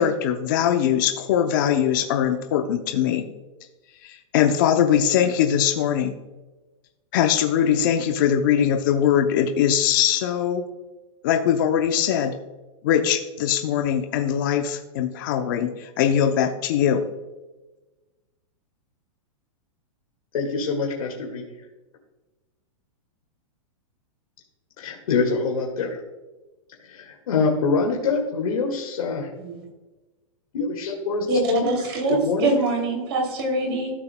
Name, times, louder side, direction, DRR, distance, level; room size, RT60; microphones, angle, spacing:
voice 1, 0.0-3.3 4.0-6.2 7.1-10.6 11.2-12.4 12.8-17.0, left 9 dB, 35° left, 5 dB, 0.5 m, -21 dB
voice 2, 20.3-21.5 24.8-26.0 26.8-29.3 30.5-31.7 32.1-32.6, left 4 dB, 85° left, -1 dB, 1.8 m, -25 dB
voice 3, 31.3-33.9, right 3 dB, 50° right, 1 dB, 2.7 m, -24 dB
14.5 x 6.1 x 2.2 m, 1.1 s
supercardioid pair, 175°, 18 cm